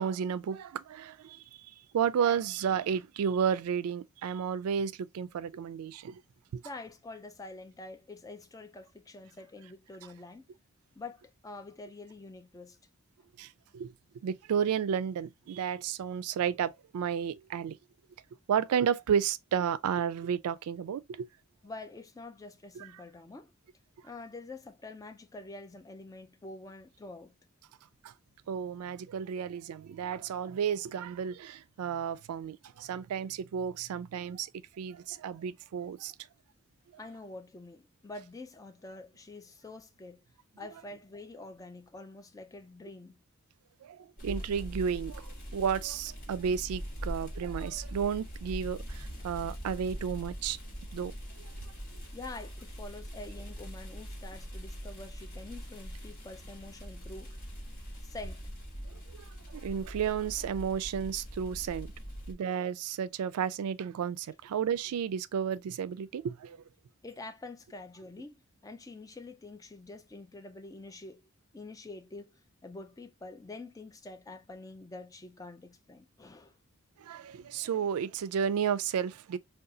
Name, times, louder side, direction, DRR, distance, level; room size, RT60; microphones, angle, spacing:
voice 1, 0.0-6.2 6.5-6.6 13.4-13.9 14.2-17.8 18.5-21.3 22.7-23.0 28.0-28.1 28.5-36.1 43.8-50.6 50.9-51.5 51.9-52.0 58.8-59.2 59.5-61.9 62.3-66.6 77.0-79.4, right 7 dB, 85° right, 0.3 m, -32 dB
voice 2, 6.6-10.5 11.0-12.8 21.6-23.5 24.0-27.3 37.0-40.2 40.6-43.2 52.1-57.4 58.0-58.4 67.0-71.2 71.5-76.5, left 2 dB, 15° left, 0.3 m, -46 dB
sound 1, 44.2-62.3, equal, 40° left, 1.4 m, -42 dB
3.7 x 2.3 x 2.6 m
head